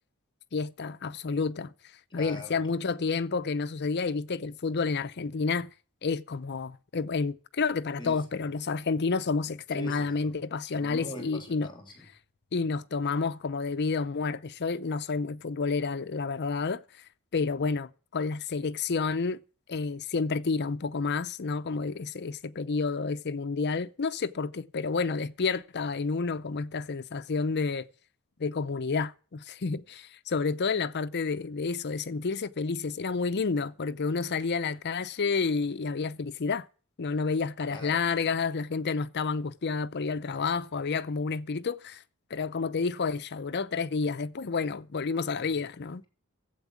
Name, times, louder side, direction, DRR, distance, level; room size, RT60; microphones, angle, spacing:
voice 1, 0.5-1.7 2.1-5.7 6.0-11.7 12.5-16.8 17.3-19.4 19.7-27.9 28.4-36.7 37.0-42.0 42.3-46.0, left 4 dB, 50° left, 0.6 m, -30 dB
voice 2, 2.1-2.6 8.0-8.5 9.7-12.1 37.7-38.3 45.3-45.5, equal, 20° left, 2.8 m, -43 dB
12.0 x 8.2 x 8.3 m
head